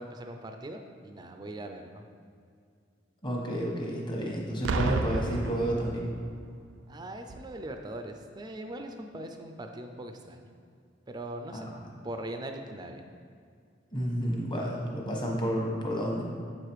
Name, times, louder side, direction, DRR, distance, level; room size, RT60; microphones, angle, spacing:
voice 1, 0.0-2.0 6.9-10.4 11.1-11.7 12.0-13.0, right 1 dB, 25° right, 5 dB, 0.4 m, -40 dB
voice 2, 3.2-6.1 11.5-11.7 13.9-16.2, equal, 25° left, -2 dB, 1.2 m, -31 dB
Boom, 4.6-6.4 7.3-7.5, right 3 dB, 90° right, 0.4 m, -31 dB
7.3 x 4.9 x 4.6 m, 2.3 s
head